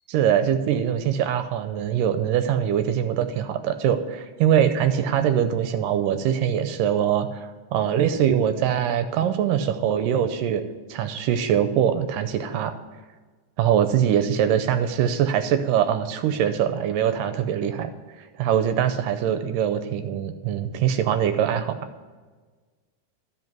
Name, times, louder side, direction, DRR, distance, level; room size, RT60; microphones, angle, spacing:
voice 1, 0.1-10.6 10.9-12.7 13.6-17.9 18.4-21.8, right 9 dB, 80° right, 9 dB, 2.1 m, -23 dB
12.5 x 5.2 x 6.0 m, 1.4 s
omnidirectional pair, 4.1 m